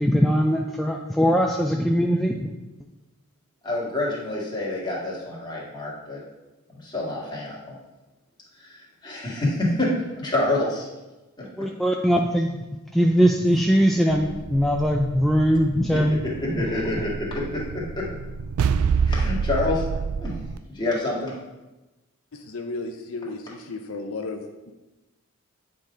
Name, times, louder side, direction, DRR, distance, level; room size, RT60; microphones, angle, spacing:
voice 1, 0.0-2.5 11.6-12.6 12.9-16.2, equal, ahead, 0 dB, 0.3 m, -21 dB
voice 2, 3.6-6.2 6.7-7.8 8.6-9.9 10.2-10.9 15.9-16.0 16.4-18.0 19.0-19.8 20.2-20.3 20.7-21.3, left 2 dB, 20° left, -5 dB, 1.9 m, -27 dB
sound 1, 14.1-20.6, right 5 dB, 80° right, 0.4 m, -28 dB
voice 3, 22.3-24.7, left 3 dB, 65° left, 4 dB, 0.6 m, -34 dB
8.8 x 3.8 x 5.0 m, 1.1 s
head